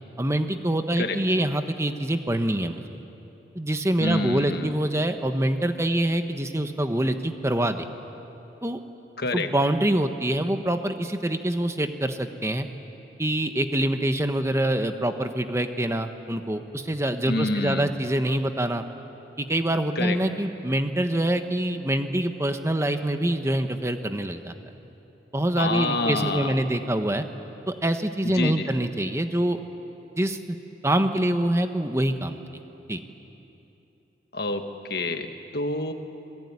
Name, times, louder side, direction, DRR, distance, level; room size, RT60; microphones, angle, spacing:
voice 1, 0.2-2.8 3.5-7.9 8.6-8.8 9.3-12.7 13.2-18.9 19.4-24.5 25.3-27.3 27.7-29.6 30.2-30.6 30.8-32.4 32.9-33.0, right 1 dB, 15° right, 7 dB, 1.1 m, -25 dB
voice 2, 4.0-4.8 9.2-9.5 17.3-17.9 19.9-20.2 25.6-26.6 28.2-28.7 34.3-35.9, left 2 dB, 60° left, 6 dB, 1.6 m, -28 dB
27.0 x 20.0 x 9.7 m, 2.9 s
head